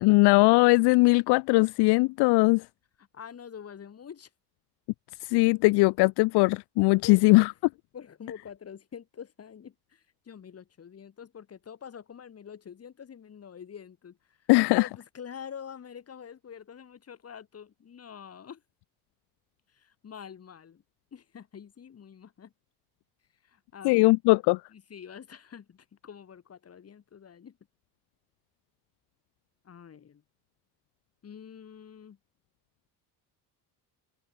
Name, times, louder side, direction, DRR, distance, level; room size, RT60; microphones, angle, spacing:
voice 1, 0.0-2.6 5.2-7.5 14.5-14.9 23.8-24.6, left 24 dB, 75° left, 0.5 m, -20 dB
voice 2, 3.0-4.3 7.0-7.5 7.9-18.6 19.7-20.8 21.1-22.5 23.4-24.2 24.7-27.6 29.6-30.2 31.2-32.2, left 7 dB, 35° left, 6.5 m, -46 dB
cardioid pair, 135°, 41 cm